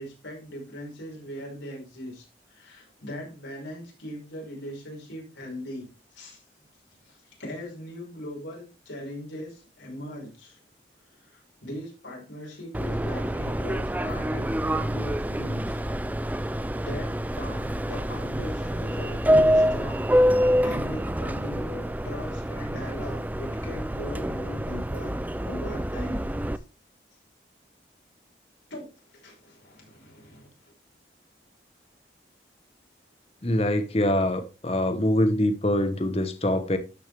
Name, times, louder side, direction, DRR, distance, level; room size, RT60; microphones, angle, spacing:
voice 1, 0.0-6.4 7.0-10.6 11.1-15.8 16.7-20.1 20.6-26.3 28.7-30.5, equal, 85° left, 5.4 m, -39 dB
Subway metro underground, 12.7-26.6, equal, 10° right, 0.4 m, -26 dB
voice 2, 33.4-36.8, left 1 dB, 35° left, 0.9 m, -24 dB
12.5 x 6.4 x 3.4 m
head